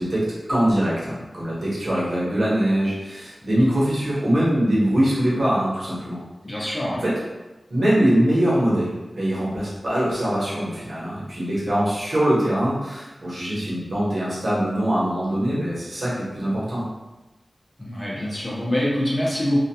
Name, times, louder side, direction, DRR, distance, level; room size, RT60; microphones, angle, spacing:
voice 1, 0.0-6.2 7.0-7.1 7.7-16.9, right 1 dB, 80° right, -8 dB, 1.0 m, -22 dB
voice 2, 6.4-7.0 17.8-19.6, left 1 dB, 30° left, -6 dB, 0.8 m, -24 dB
2.3 x 2.3 x 2.8 m, 1.1 s
wide cardioid pair, 65°, 0 cm